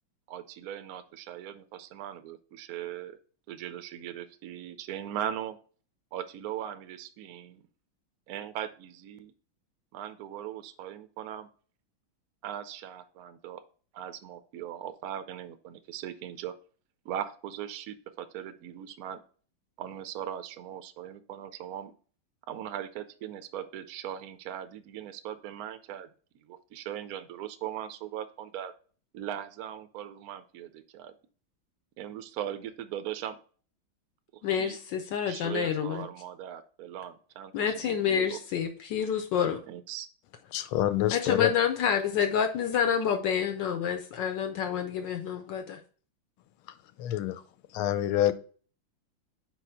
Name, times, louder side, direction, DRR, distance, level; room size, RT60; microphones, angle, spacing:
voice 1, 0.3-3.2 3.5-5.6 6.1-7.7 8.3-9.3 9.9-11.5 12.4-13.6 13.9-16.5 17.0-19.2 19.8-21.9 22.5-26.1 26.4-28.7 29.1-31.1 32.0-33.4 34.3-34.8 35.3-38.4 39.7-40.1, right 10 dB, 80° right, 0.8 m, -39 dB
voice 2, 34.4-36.1 37.5-39.6 41.1-45.8, left 8 dB, 70° left, 1.2 m, -28 dB
voice 3, 40.5-41.5 47.0-47.4 47.7-48.3, left 13 dB, 90° left, 1.4 m, -26 dB
4.6 x 4.2 x 5.4 m
omnidirectional pair, 2.2 m